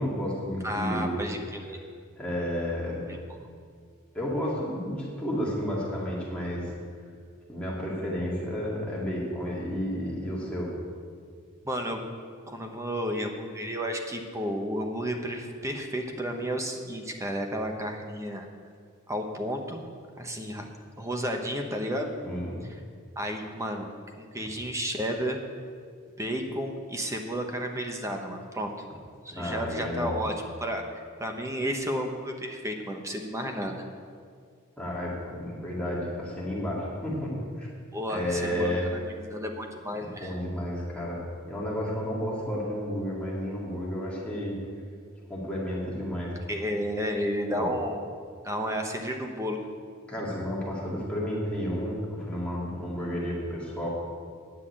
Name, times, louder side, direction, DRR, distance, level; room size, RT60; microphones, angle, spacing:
voice 1, 0.0-1.3 2.2-3.1 4.1-6.7 7.5-10.7 22.2-22.6 29.3-30.2 34.8-37.7 38.1-38.9 40.0-44.6 45.3-46.3 47.5-47.7 50.1-53.9, equal, 5° left, -6 dB, 2.4 m, -31 dB
voice 2, 0.6-1.8 11.6-12.0 12.5-18.5 19.1-19.8 20.2-20.7 21.0-22.1 23.2-23.9 24.2-25.4 26.2-28.7 29.2-30.3 30.6-30.8 31.2-33.8 37.9-40.4 46.5-48.0 48.4-49.6, equal, 15° right, 3 dB, 1.0 m, -32 dB
10.0 x 5.8 x 8.7 m, 2.1 s
head